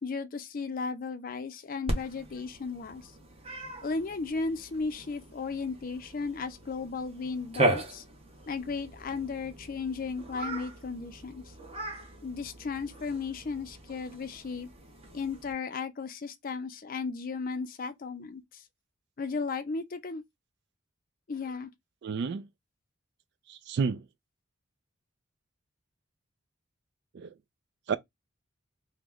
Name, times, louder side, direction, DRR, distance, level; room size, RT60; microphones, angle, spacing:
voice 1, 0.0-3.1 3.8-8.0 8.5-11.5 12.2-14.7 15.1-18.6 19.2-20.2 21.3-21.7, left 4 dB, 40° left, 0.4 m, -35 dB
Cat, 1.9-15.5, right 1 dB, 30° right, 0.9 m, -37 dB
voice 2, 22.0-22.5 23.5-24.0 27.1-27.3 27.9-28.0, right 5 dB, 55° right, 0.3 m, -30 dB
3.1 x 2.1 x 3.5 m
head